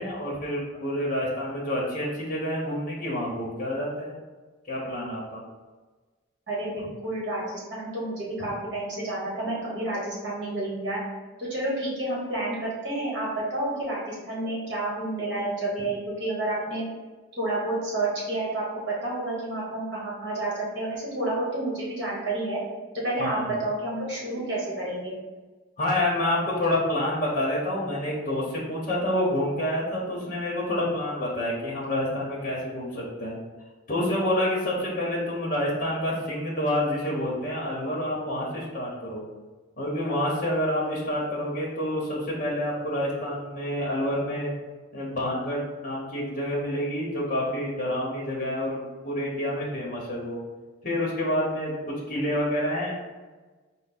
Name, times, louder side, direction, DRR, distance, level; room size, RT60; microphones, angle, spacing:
voice 1, 0.0-4.1 4.6-5.4 23.2-23.5 25.8-33.4 33.9-39.2 39.8-44.5 44.9-50.4 50.8-52.9, left 1 dB, 40° left, -5 dB, 0.8 m, -28 dB
voice 2, 6.5-11.0 11.4-16.8 17.3-22.6 23.0-25.1, right 2 dB, 55° right, -6 dB, 1.4 m, -30 dB
4.4 x 2.0 x 4.1 m, 1.3 s
head